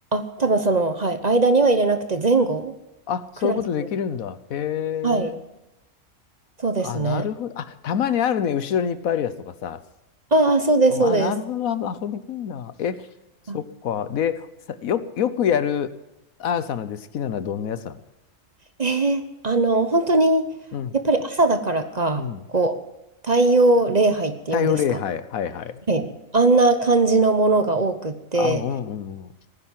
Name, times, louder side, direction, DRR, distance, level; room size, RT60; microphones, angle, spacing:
voice 1, 0.1-2.7 3.4-3.6 5.0-5.3 6.6-7.3 10.3-11.3 13.5-13.6 18.8-20.5 20.9-22.8 23.2-24.8 25.9-28.6, right 2 dB, 35° right, 9 dB, 0.9 m, -20 dB
voice 2, 3.1-5.4 6.8-9.8 10.9-13.1 13.5-15.9 16.4-18.0 20.7-20.9 22.2-22.5 24.5-25.8 28.3-29.3, left 8 dB, 80° left, 14 dB, 1.3 m, -26 dB
16.5 x 10.0 x 7.5 m, 0.98 s
omnidirectional pair, 1.4 m